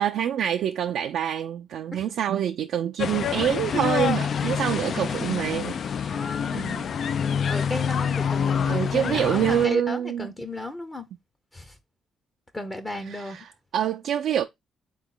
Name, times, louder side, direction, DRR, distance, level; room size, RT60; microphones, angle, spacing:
voice 1, 0.0-6.1 6.5-6.9 8.7-10.3 13.1-14.4, right 10 dB, 75° right, 0.4 m, -26 dB
sound 1, 3.0-9.7, left 7 dB, 55° left, 0.3 m, -27 dB
voice 2, 6.1-7.2 7.5-11.1 11.5-11.8 12.5-13.4, left 1 dB, 20° left, 0.7 m, -34 dB
3.8 x 3.0 x 3.7 m
cardioid pair, 90°, 0 cm